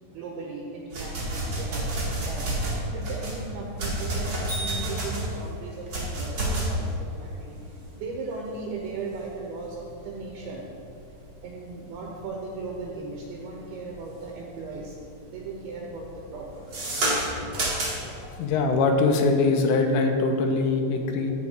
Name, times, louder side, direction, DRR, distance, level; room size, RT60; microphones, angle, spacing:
voice 1, 0.0-7.6 8.0-10.6 11.4-15.0 15.3-16.6, right 3 dB, 75° right, -1 dB, 2.5 m, -37 dB
sound 1, 0.9-14.2 14.6-15.1 15.3-18.2, right 1 dB, 45° right, 1.3 m, -30 dB
voice 2, 18.0-21.3, left 3 dB, 75° left, 3 dB, 2.6 m, -23 dB
14.5 x 4.9 x 4.5 m, 2.5 s
omnidirectional pair, 4.8 m